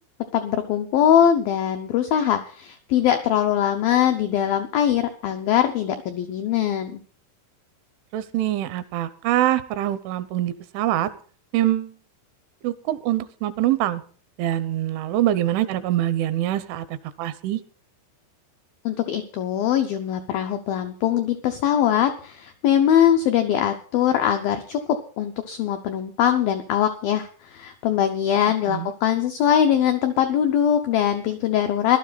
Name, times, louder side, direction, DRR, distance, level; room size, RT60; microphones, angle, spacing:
voice 1, 0.3-7.0 18.9-32.0, left 9 dB, 85° left, 6 dB, 2.0 m, -22 dB
voice 2, 8.1-11.1 11.5-11.9 12.6-14.0 14.4-16.9 17.2-17.6 28.7-28.9, right 13 dB, 80° right, 14 dB, 3.3 m, -24 dB
17.5 x 12.0 x 4.1 m, 0.42 s
omnidirectional pair, 5.5 m